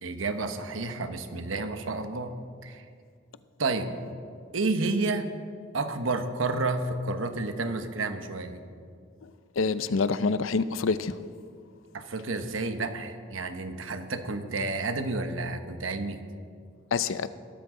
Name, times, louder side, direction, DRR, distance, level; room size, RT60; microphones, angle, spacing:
voice 1, 0.0-2.3 2.6-2.8 3.6-3.9 4.5-5.3 5.7-8.6 11.9-16.2, right 3 dB, 85° right, 1.1 m, -30 dB
voice 2, 9.6-11.2 16.9-17.3, left 4 dB, 80° left, 0.5 m, -26 dB
20.5 x 12.5 x 3.8 m
head